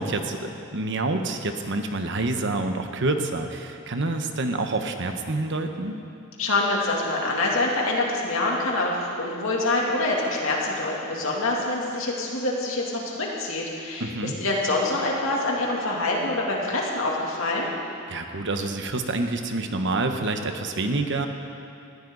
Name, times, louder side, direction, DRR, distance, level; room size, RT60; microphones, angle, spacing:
voice 1, 0.0-6.0 14.0-14.4 18.1-21.3, right 2 dB, 60° right, 6 dB, 1.1 m, -27 dB
voice 2, 6.4-17.7, left 2 dB, 70° left, -3 dB, 2.7 m, -25 dB
19.5 x 14.5 x 4.0 m, 2.6 s
head